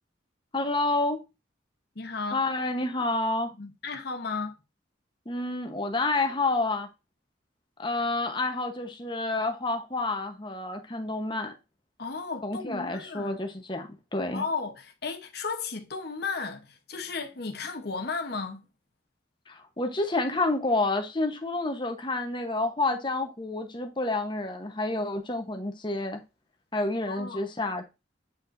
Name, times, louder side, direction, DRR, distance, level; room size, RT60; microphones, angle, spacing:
voice 1, 0.5-1.2 2.3-3.5 5.3-6.9 7.8-11.5 12.4-14.4 19.5-26.2 26.7-27.8, left 2 dB, 25° left, 1.0 m, -29 dB
voice 2, 1.9-2.4 3.6-4.6 12.0-13.4 14.3-18.6 27.1-27.5, left 4 dB, 55° left, 0.9 m, -34 dB
8.2 x 5.1 x 2.6 m
head